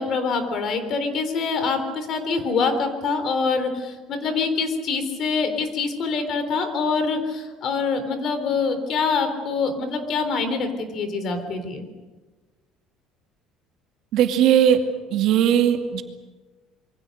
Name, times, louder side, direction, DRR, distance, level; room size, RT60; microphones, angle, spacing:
voice 1, 0.0-11.9, left 4 dB, 40° left, 9 dB, 3.6 m, -25 dB
voice 2, 14.1-14.8 15.1-16.0, right 10 dB, 50° right, 5 dB, 2.3 m, -18 dB
27.0 x 24.0 x 6.6 m, 1.3 s
cardioid pair, 175°, 0 cm